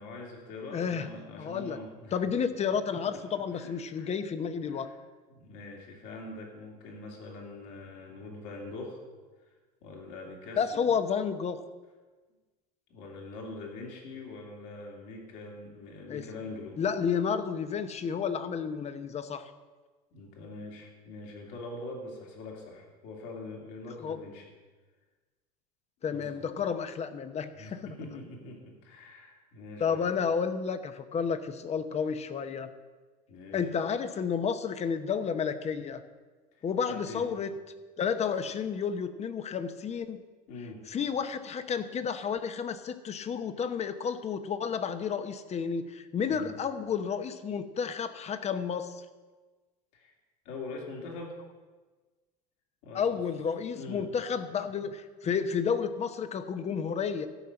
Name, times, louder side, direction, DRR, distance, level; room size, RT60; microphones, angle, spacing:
voice 1, 0.0-2.2 2.9-3.2 3.5-4.1 4.7-4.9 5.3-9.0 9.8-10.9 12.9-16.8 20.1-24.5 26.0-26.5 27.6-30.1 33.3-33.7 36.5-37.2 40.5-40.8 46.3-46.5 49.9-50.1 50.4-51.4 52.8-53.2 53.7-54.1, left 2 dB, 65° left, 0 dB, 3.0 m, -43 dB
voice 2, 0.7-1.1 1.4-1.8 2.1-4.9 10.6-11.6 16.1-16.3 16.8-19.5 24.0-24.2 26.0-27.9 29.8-32.7 33.5-36.0 36.6-37.5 38.0-40.2 40.9-49.0 52.9-57.3, left 6 dB, 35° left, 11 dB, 0.9 m, -31 dB
13.5 x 5.6 x 7.8 m, 1.3 s
hypercardioid pair, 90°, 20 cm